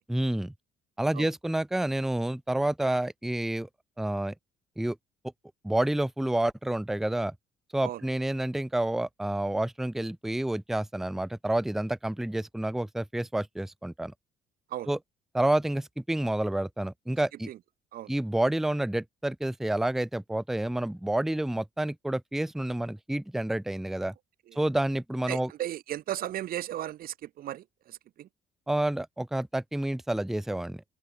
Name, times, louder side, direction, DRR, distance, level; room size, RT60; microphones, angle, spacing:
voice 1, 0.1-0.5 1.0-3.7 4.0-4.3 4.8-5.0 5.6-7.3 7.7-14.1 14.9-15.0 15.3-17.5 18.1-24.1 24.6-25.5 28.7-30.8, right 1 dB, ahead, 0.5 m, -29 dB
voice 2, 25.3-28.3, right 13 dB, 60° right, 1.1 m, -36 dB
open air
cardioid pair, 110°, 17 cm